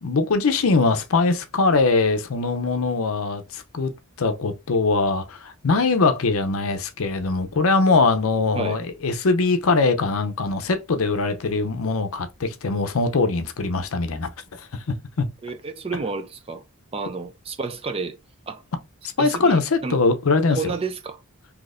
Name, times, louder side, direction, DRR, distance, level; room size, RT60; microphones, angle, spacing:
voice 1, 0.0-3.9 4.2-14.3 14.6-14.8 15.2-15.3 19.2-20.7, left 3 dB, 70° left, 0.6 m, -22 dB
voice 2, 15.4-16.6 16.9-18.2 18.5-18.6 19.2-20.0 20.5-21.2, right 4 dB, 25° right, 0.4 m, -30 dB
2.8 x 2.5 x 4.0 m
head